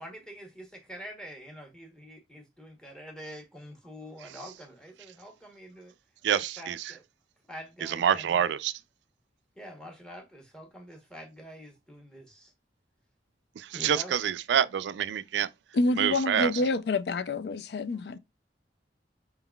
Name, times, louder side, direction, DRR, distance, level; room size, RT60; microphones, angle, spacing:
voice 1, 0.0-5.9 6.6-7.0 7.5-8.2 9.6-12.5 13.7-14.1, equal, 5° left, 0.9 m, -45 dB
voice 2, 6.2-7.0 7.8-8.7 13.6-15.5 16.0-16.6, right 8 dB, 80° right, 0.3 m, -27 dB
voice 3, 15.7-18.2, left 2 dB, 65° left, 0.4 m, -27 dB
4.5 x 3.6 x 2.3 m
head